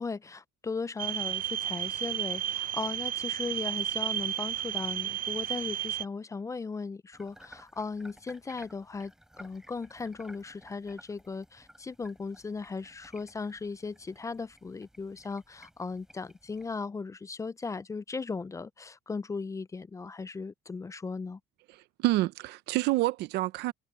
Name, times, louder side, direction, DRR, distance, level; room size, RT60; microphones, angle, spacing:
voice 1, 0.0-9.1 9.4-21.4, left 4 dB, 20° left, 0.4 m, -37 dB
sound 1, 1.0-6.0, right 11 dB, 55° right, 0.9 m, -32 dB
sound 2, 7.1-16.8, equal, 5° right, 7.6 m, -56 dB
voice 2, 21.7-23.7, right 18 dB, 85° right, 0.8 m, -28 dB
cardioid pair, 110°, 17 cm